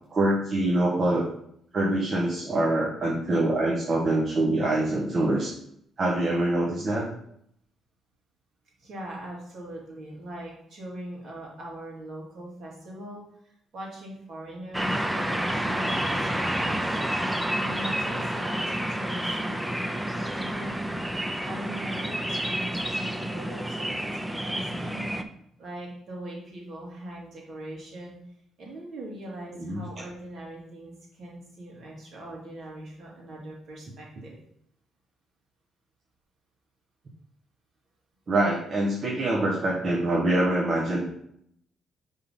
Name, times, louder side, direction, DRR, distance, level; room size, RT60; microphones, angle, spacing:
voice 1, 0.1-1.3 1.7-5.5 6.0-7.1 29.6-29.8 38.3-41.0, right 1 dB, 45° right, -2 dB, 1.2 m, -24 dB
voice 2, 8.8-20.7 21.4-25.0 25.6-28.2 28.6-34.4, right 1 dB, 60° right, -3 dB, 2.5 m, -41 dB
sound 1, 14.7-25.2, right 1 dB, 5° right, 0.5 m, -29 dB
5.7 x 3.8 x 5.4 m, 0.71 s
cardioid pair, 90°, 0 cm